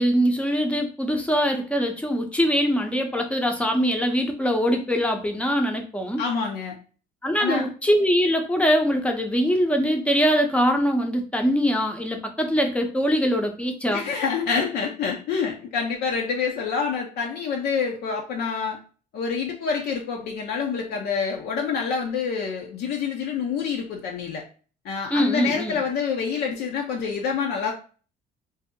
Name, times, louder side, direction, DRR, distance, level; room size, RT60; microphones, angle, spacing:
voice 1, 0.0-6.2 7.2-14.0 25.1-25.8, equal, 5° left, 4 dB, 0.6 m, -22 dB
voice 2, 6.2-6.8 7.4-7.7 13.9-18.8 19.1-24.4 24.8-27.7, left 6 dB, 70° left, 1 dB, 0.6 m, -27 dB
2.7 x 2.0 x 3.6 m, 0.38 s
cardioid pair, 110°, 17 cm